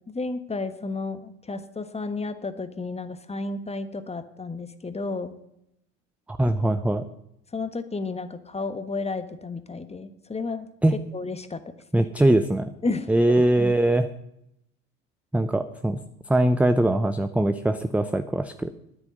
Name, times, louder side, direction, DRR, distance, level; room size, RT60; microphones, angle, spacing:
voice 1, 0.1-5.3 7.5-10.7 11.1-11.6 11.9-12.0 12.8-13.1 13.3-13.7, left 3 dB, 15° left, 11 dB, 1.3 m, -32 dB
voice 2, 6.3-7.0 10.8-11.0 11.9-12.7 13.1-14.1 15.3-16.0 16.3-18.7, right 1 dB, 5° right, 9 dB, 0.6 m, -22 dB
9.7 x 9.4 x 8.7 m, 0.79 s
hypercardioid pair, 75°, 39 cm